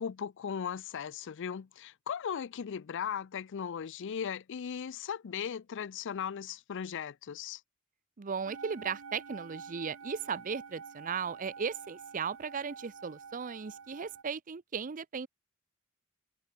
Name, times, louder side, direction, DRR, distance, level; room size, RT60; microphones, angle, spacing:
voice 1, 0.0-7.6, left 7 dB, 60° left, 0.4 m, -37 dB
voice 2, 8.2-15.3, right 6 dB, 40° right, 0.6 m, -36 dB
sound 1, 8.4-14.2, right 5 dB, 85° right, 1.0 m, -48 dB
head